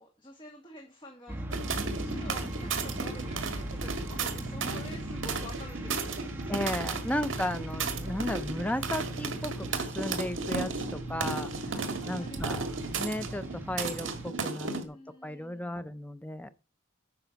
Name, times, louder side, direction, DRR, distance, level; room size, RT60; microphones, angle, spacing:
voice 1, 0.0-6.3 10.8-13.0 14.7-15.8, left 1 dB, 25° left, 1.8 m, -49 dB
sound 1, 1.3-14.3, right 1 dB, 10° right, 1.4 m, -39 dB
sound 2, 1.5-14.8, right 4 dB, 65° right, 1.7 m, -35 dB
voice 2, 6.5-11.8 12.1-12.7 13.0-15.0 15.2-16.5, left 1 dB, 5° left, 0.6 m, -35 dB
9.1 x 6.8 x 5.8 m
head